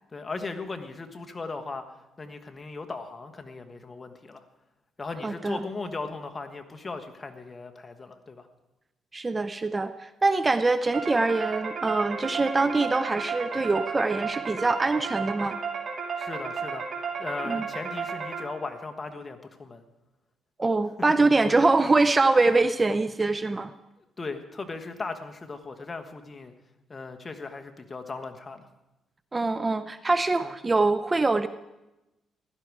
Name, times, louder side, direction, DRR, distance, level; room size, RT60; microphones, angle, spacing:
voice 1, 0.1-4.4 5.0-8.5 16.2-16.9 17.2-19.8 22.4-22.5 24.2-26.5 26.9-28.7 30.4-30.5, left 3 dB, 30° left, 6 dB, 1.4 m, -37 dB
voice 2, 5.2-5.6 9.1-15.6 17.5-17.6 20.6-23.7 29.3-31.5, right 3 dB, 25° right, 12 dB, 0.5 m, -24 dB
sound 1, 10.9-18.8, right 5 dB, 45° right, 2.7 m, -33 dB
15.5 x 12.0 x 4.8 m, 0.98 s
cardioid pair, 90°, 0 cm